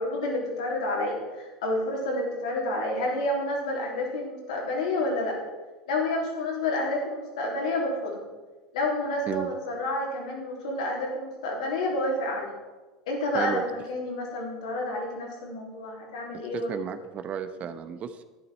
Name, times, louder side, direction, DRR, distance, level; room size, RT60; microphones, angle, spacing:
voice 1, 0.0-5.4 5.9-8.2 8.7-12.5 13.1-16.8 17.6-17.7, left 1 dB, 75° left, -2 dB, 3.3 m, -29 dB
voice 2, 16.5-18.2, right 8 dB, 40° right, 9 dB, 0.9 m, -33 dB
11.5 x 9.8 x 4.4 m, 1.2 s
hypercardioid pair, 85°, 3 cm